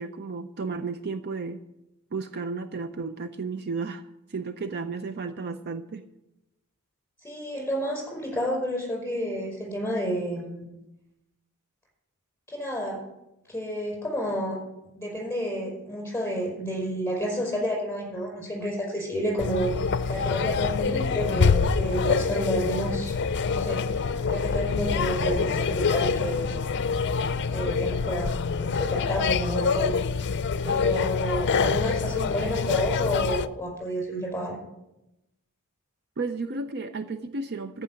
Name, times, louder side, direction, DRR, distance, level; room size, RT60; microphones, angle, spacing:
voice 1, 0.0-1.6 2.1-4.0 4.3-6.1 36.2-37.8, right 4 dB, 45° right, 9 dB, 0.5 m, -33 dB
voice 2, 7.2-10.7 12.5-13.0 13.5-14.6 14.9-19.7 20.1-23.1 23.5-26.6 27.5-28.3 28.6-30.0 30.6-34.6, equal, 10° left, -1 dB, 5.2 m, -30 dB
sound 1, 19.4-33.5, left 5 dB, 50° left, 0.5 m, -26 dB
sound 2, 20.1-28.1, left 1 dB, 70° right, 3.2 m, -42 dB
14.0 x 5.5 x 8.8 m, 0.91 s
head